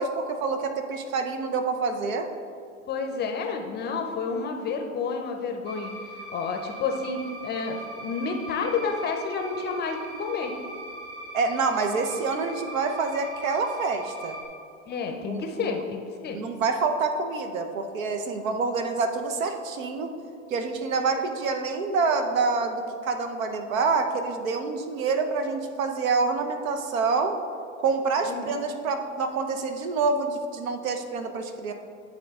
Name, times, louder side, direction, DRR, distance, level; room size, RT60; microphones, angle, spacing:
voice 1, 0.0-2.3 11.3-14.4 15.3-15.7 16.3-20.1 20.5-27.4 27.8-31.7, right 4 dB, 75° right, 6 dB, 0.9 m, -27 dB
voice 2, 2.9-5.9 6.3-10.5 14.9-16.4 28.3-28.6, left 5 dB, 25° left, 4 dB, 0.6 m, -30 dB
sound 1, 5.6-14.5, right 1 dB, 50° right, 1.6 m, -40 dB
10.0 x 3.8 x 3.6 m, 2.4 s
hypercardioid pair, 95°, 42 cm